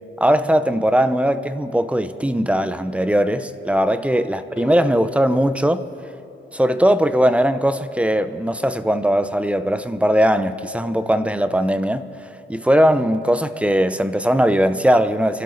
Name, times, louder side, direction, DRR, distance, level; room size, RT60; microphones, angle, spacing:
voice 1, 0.2-5.8 6.5-12.0 12.5-15.4, equal, 5° right, 0.7 m, -19 dB
sound 1, 4.6-6.9, left 7 dB, 65° left, 1.2 m, -39 dB
28.5 x 12.0 x 4.0 m
cardioid pair, 90°, 20 cm